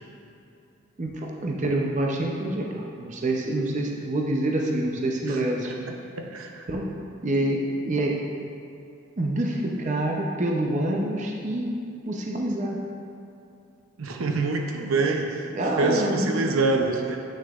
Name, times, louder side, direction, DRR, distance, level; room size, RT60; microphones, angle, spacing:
voice 1, 1.0-5.9 6.7-6.9 7.2-8.2 9.2-11.7 12.1-12.8 15.5-16.5, right 1 dB, 35° right, 0 dB, 0.5 m, -26 dB
voice 2, 6.2-6.6 14.0-17.2, right 3 dB, 80° right, 2 dB, 0.6 m, -26 dB
8.8 x 6.2 x 2.4 m, 2.6 s
head